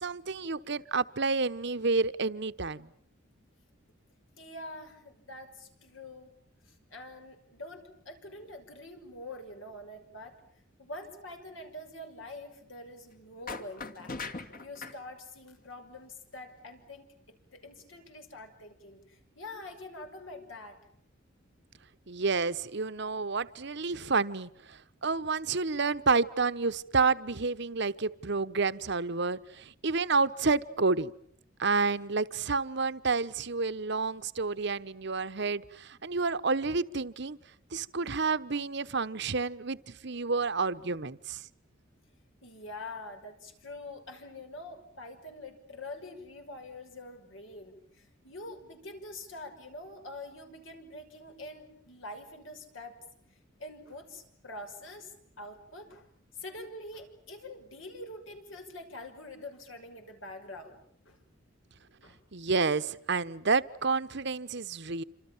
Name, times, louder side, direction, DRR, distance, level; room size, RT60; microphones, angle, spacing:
voice 1, 0.0-2.9 22.1-31.1 31.6-37.4 37.7-41.4 62.3-65.0, right 4 dB, 60° right, 13 dB, 1.1 m, -29 dB
voice 2, 4.4-6.3 6.7-10.4 10.8-14.2 14.6-20.8 42.4-53.0 53.6-56.1 56.4-61.2 62.0-62.2, left 2 dB, 75° left, 5 dB, 6.0 m, -45 dB
sound 1, 13.5-15.0, left 3 dB, 45° left, 2.4 m, -39 dB
28.0 x 26.5 x 7.3 m, 0.66 s
head